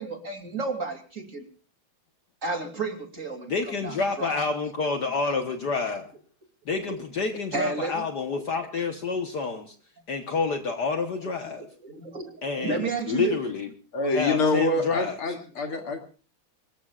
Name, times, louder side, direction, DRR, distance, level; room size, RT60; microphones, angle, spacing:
voice 1, 0.0-1.4 2.4-3.6 3.8-4.3 6.8-7.0 7.5-8.0 11.4-13.4 14.4-14.5, right 4 dB, 35° right, 4 dB, 3.1 m, -32 dB
voice 2, 3.5-6.1 6.7-9.8 10.1-11.6 12.4-13.7 14.1-15.2, left 4 dB, 55° left, 6 dB, 1.7 m, -28 dB
voice 3, 13.9-16.0, left 3 dB, 80° left, 3 dB, 3.3 m, -25 dB
24.5 x 21.5 x 2.4 m, 0.36 s
omnidirectional pair, 2.3 m